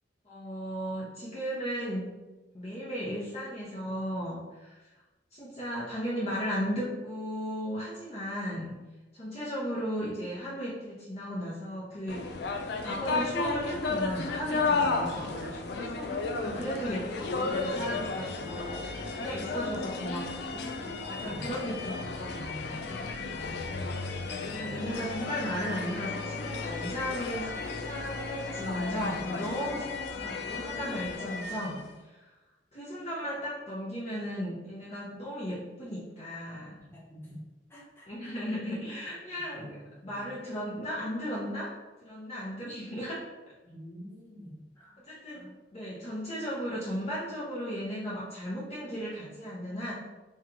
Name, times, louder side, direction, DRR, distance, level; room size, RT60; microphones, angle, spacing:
voice 1, 0.2-2.1 2.5-4.8 5.3-8.8 9.1-12.2 12.5-20.7 21.1-22.9 24.4-31.8 32.1-32.3 32.7-36.8 38.1-39.7 40.0-41.7 42.0-43.2 45.1-45.4 45.7-49.9, equal, 35° left, -8 dB, 0.8 m, -35 dB
sound 1, 12.1-31.9, left 4 dB, 65° left, 0.4 m, -34 dB
voice 2, 21.2-21.7 23.2-23.9 36.8-37.4 37.7-38.3 39.5-40.3 43.6-45.0 45.3-45.5, equal, 15° left, -7 dB, 1.2 m, -48 dB
3.1 x 2.9 x 3.7 m, 1.1 s
head